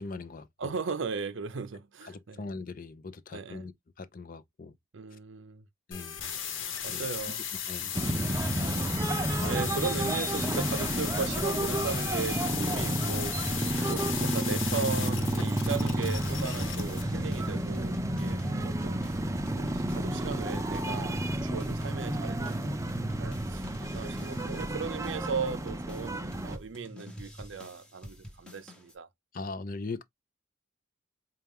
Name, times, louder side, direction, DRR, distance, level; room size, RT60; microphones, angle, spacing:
voice 1, 0.0-0.7 2.1-3.7 4.0-4.7 5.9-6.2 6.9-7.0 7.7-7.9 9.4-9.5 29.3-30.0, left 3 dB, 40° left, 0.5 m, -40 dB
voice 2, 0.6-2.4 3.3-3.7 4.9-5.6 6.8-7.4 7.8-8.0 8.6-8.9 9.5-13.6 13.8-19.0 19.6-29.1, right 5 dB, 65° right, 0.6 m, -37 dB
sound 1, 5.9-17.0, left 8 dB, 75° left, 1.0 m, -36 dB
sound 2, 7.9-26.6, right 1 dB, 15° right, 0.4 m, -31 dB
sound 3, 13.0-14.4 14.7-28.9, left 1 dB, 5° left, 0.9 m, -48 dB
4.3 x 2.3 x 3.4 m
head